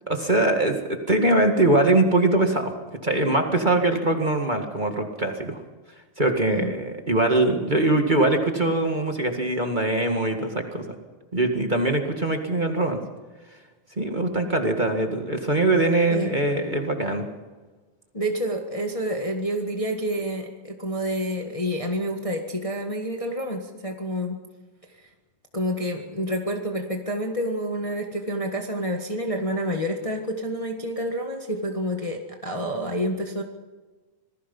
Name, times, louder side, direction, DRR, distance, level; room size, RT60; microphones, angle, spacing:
voice 1, 0.1-2.7 3.0-5.6 6.2-10.8 11.3-13.0 14.0-17.2, right 2 dB, 20° right, 3 dB, 1.3 m, -22 dB
voice 2, 18.1-24.4 25.5-33.4, equal, 65° left, 2 dB, 0.3 m, -28 dB
26.0 x 19.5 x 5.4 m, 1.3 s
omnidirectional pair, 3.7 m